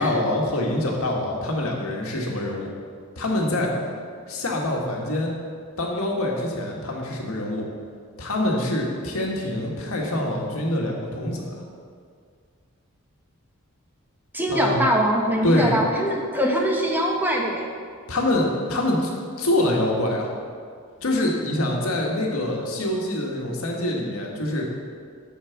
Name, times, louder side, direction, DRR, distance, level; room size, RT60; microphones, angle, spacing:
voice 1, 0.0-2.7 3.1-3.7 4.3-5.3 5.8-7.6 8.2-11.6 14.5-14.8 15.4-15.8 18.1-19.1 19.4-20.3 21.0-24.7, left 1 dB, 75° left, -1 dB, 1.8 m, -25 dB
voice 2, 14.3-17.7, equal, 10° right, 0 dB, 1.1 m, -23 dB
8.8 x 7.3 x 6.0 m, 2.1 s
head